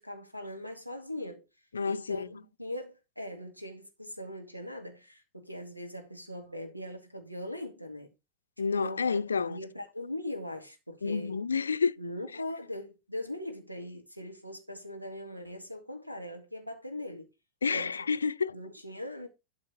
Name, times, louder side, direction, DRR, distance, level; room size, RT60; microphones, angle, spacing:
voice 1, 0.0-1.4 1.8-8.1 8.7-9.2 9.5-11.4 12.0-17.3 17.7-18.0 18.5-19.3, left 1 dB, 90° right, 2.1 m, -40 dB
voice 2, 1.7-2.3 8.6-9.6 11.0-11.9 17.6-18.5, left 5 dB, 75° left, 0.5 m, -29 dB
12.0 x 4.8 x 4.2 m
figure-of-eight pair, 90°, 0 cm